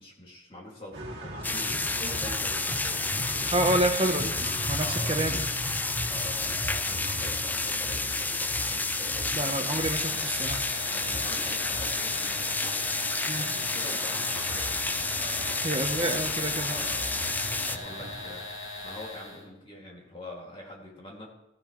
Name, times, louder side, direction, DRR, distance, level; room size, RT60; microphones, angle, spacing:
voice 1, 0.0-3.9 4.8-5.4 6.1-9.3 10.8-12.9 13.4-14.8 15.2-15.8 16.6-17.3 17.6-18.5 18.8-21.3, left 1 dB, 30° left, -2 dB, 2.6 m, -45 dB
sound 1, 0.9-18.4, equal, 60° right, 2.6 m, -39 dB
sound 2, 1.4-17.8, left 3 dB, 10° left, 0.3 m, -30 dB
voice 2, 3.5-5.5 9.3-10.6 13.3-13.5 15.6-16.7, right 1 dB, 30° right, 4 dB, 1.1 m, -28 dB
sound 3, 9.6-19.4, left 2 dB, 85° left, 2.7 m, -40 dB
15.0 x 10.5 x 3.3 m, 0.88 s
head